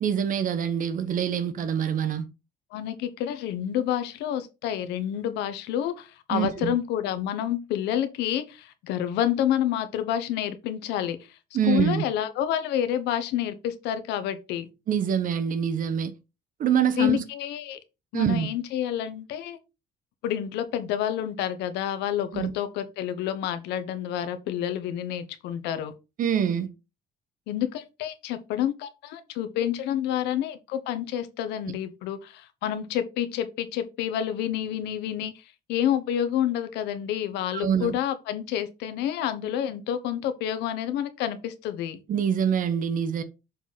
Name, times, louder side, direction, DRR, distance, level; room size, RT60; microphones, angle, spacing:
voice 1, 0.0-2.2 6.3-6.7 11.5-12.0 14.9-16.1 16.6-17.2 18.1-18.5 22.3-22.5 26.2-26.7 37.5-37.9 42.1-43.2, right 8 dB, 55° right, 1.0 m, -25 dB
voice 2, 2.7-11.2 11.7-14.7 17.0-17.8 18.1-19.6 20.2-25.9 27.5-35.4 35.7-42.0, left 10 dB, 90° left, 1.1 m, -29 dB
6.9 x 4.0 x 4.2 m
cardioid pair, 110°, 17 cm